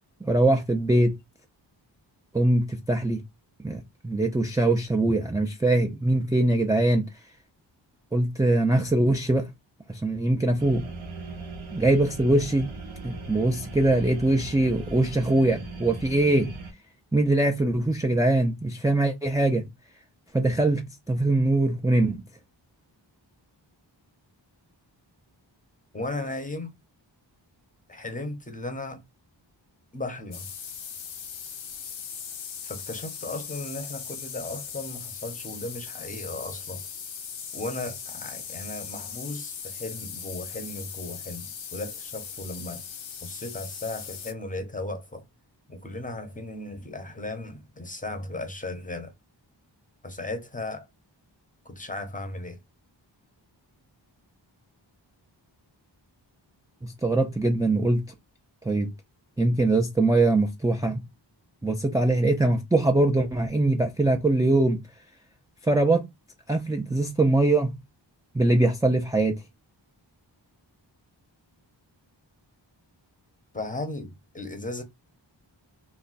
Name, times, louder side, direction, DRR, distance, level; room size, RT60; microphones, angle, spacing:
voice 1, 0.2-1.2 2.3-3.2 3.6-7.1 8.1-9.5 9.9-10.8 11.7-12.7 13.0-16.5 17.1-19.6 20.3-22.2 56.8-58.0 58.6-58.9 59.4-61.0 61.6-64.8 65.6-66.0 66.5-67.8 68.3-69.4, right 2 dB, 10° right, 0.3 m, -22 dB
sound 1, 10.6-16.7, right 2 dB, 90° right, 0.7 m, -39 dB
voice 2, 25.9-26.8 27.9-29.0 29.9-30.5 32.6-36.8 37.5-42.8 43.2-45.2 45.7-49.1 50.0-50.9 51.6-52.6 73.5-74.8, left 2 dB, 15° left, 0.7 m, -36 dB
sound 2, 30.3-44.3, left 7 dB, 90° left, 0.6 m, -39 dB
2.4 x 2.2 x 3.9 m
wide cardioid pair, 80°, 46 cm